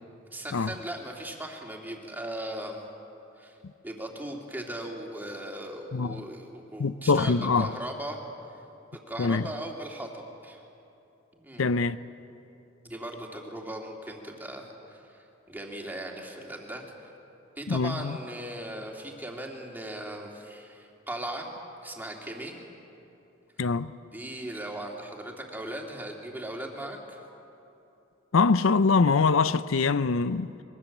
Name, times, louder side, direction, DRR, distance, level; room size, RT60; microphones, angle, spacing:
voice 1, 0.3-2.8 3.4-3.6 3.8-8.2 9.1-10.6 11.3-11.7 12.8-16.8 17.6-21.5 21.8-22.5 24.1-27.2, right 1 dB, 10° right, 2.7 m, -38 dB
voice 2, 6.8-7.7 9.2-9.4 11.6-12.0 17.7-18.2 23.6-23.9 28.3-30.5, left 4 dB, 85° left, 0.6 m, -23 dB
24.0 x 22.0 x 7.4 m
head